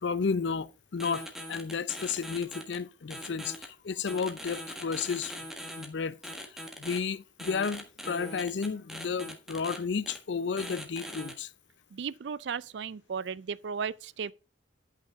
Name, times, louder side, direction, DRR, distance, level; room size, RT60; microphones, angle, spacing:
voice 1, 0.0-5.3 5.8-6.2 6.5-11.5, left 5 dB, 70° left, 0.5 m, -32 dB
sound 1, 1.0-2.8 3.1-3.6 4.1-5.8 6.2-7.0 7.4-9.8 10.1-10.2 10.6-11.3, equal, ahead, 1.4 m, -41 dB
voice 2, 11.9-14.3, right 6 dB, 70° right, 0.4 m, -35 dB
11.0 x 5.7 x 3.6 m
head